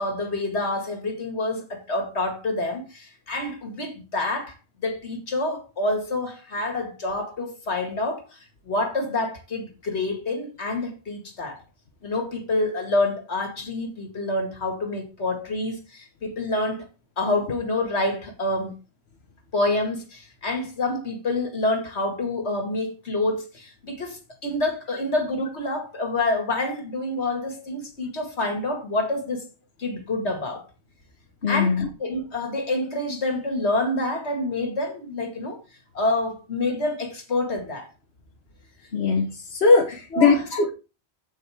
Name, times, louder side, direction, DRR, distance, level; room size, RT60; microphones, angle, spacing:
voice 1, 0.0-8.4 8.6-11.6 12.0-16.9 17.2-18.7 19.5-29.5 29.8-30.7 31.5-35.6 35.9-37.9 40.1-40.5, left 2 dB, 85° left, 2.5 m, -27 dB
voice 2, 31.4-31.9 38.9-40.7, left 4 dB, 70° left, 1.6 m, -20 dB
15.0 x 5.3 x 3.6 m
omnidirectional pair, 1.1 m